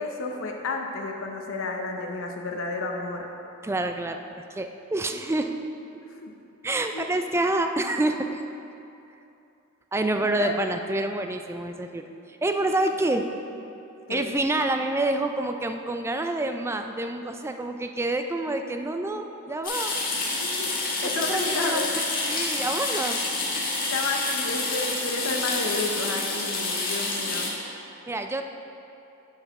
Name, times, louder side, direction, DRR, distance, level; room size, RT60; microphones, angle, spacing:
voice 1, 0.0-3.3 6.0-6.3 6.9-7.1 10.3-10.6 14.1-14.3 20.4-20.7 21.0-21.9 23.9-27.6, left 3 dB, 65° left, 2 dB, 0.8 m, -31 dB
voice 2, 3.6-4.2 4.5-5.6 6.6-8.5 9.9-12.0 12.4-13.3 14.1-19.9 21.0-21.9 22.3-23.2 28.1-28.4, right 2 dB, 10° right, 6 dB, 0.3 m, -27 dB
sound 1, 19.6-27.5, left 3 dB, 40° left, 1.5 m, -28 dB
11.0 x 5.7 x 3.6 m, 2.7 s
head